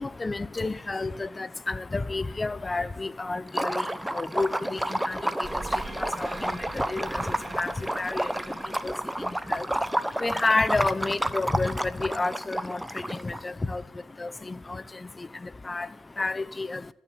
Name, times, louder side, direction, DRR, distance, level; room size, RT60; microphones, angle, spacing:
voice 1, 0.0-16.9, left 3 dB, 25° left, 0.8 m, -31 dB
Liquid, 3.5-13.4, right 1 dB, 5° right, 0.9 m, -30 dB
sound 1, 5.4-10.9, right 2 dB, 25° right, 2.3 m, -43 dB
14.0 x 9.1 x 10.0 m
cardioid pair, 70°, 0 cm